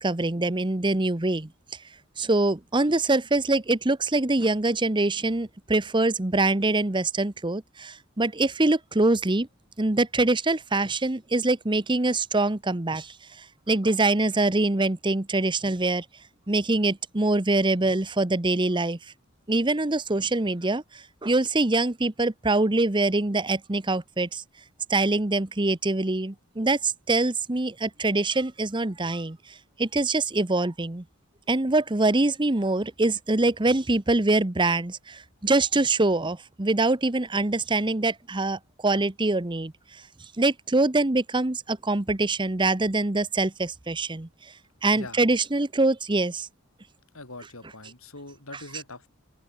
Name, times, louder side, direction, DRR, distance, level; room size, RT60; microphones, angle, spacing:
voice 1, 0.0-1.5 2.2-9.5 9.8-16.0 16.5-19.0 19.5-24.4 24.9-29.4 29.8-31.0 31.5-39.7 40.4-44.3 44.8-46.5, right 2 dB, 25° right, 1.0 m, -24 dB
voice 2, 47.1-49.1, left 2 dB, 90° left, 6.1 m, -42 dB
open air
head